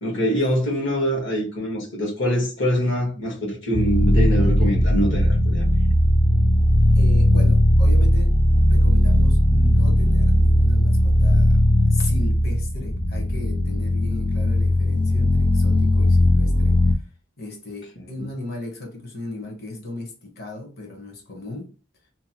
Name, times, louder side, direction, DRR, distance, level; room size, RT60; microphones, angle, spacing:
voice 1, 0.0-5.7 18.1-18.2, equal, 70° left, 1.4 m, -24 dB
sound 1, 3.7-16.9, left 1 dB, 25° left, 0.4 m, -18 dB
voice 2, 6.9-8.3 8.7-11.6 11.9-17.0 17.4-21.7, left 2 dB, 50° left, 1.0 m, -36 dB
2.8 x 2.2 x 2.8 m
head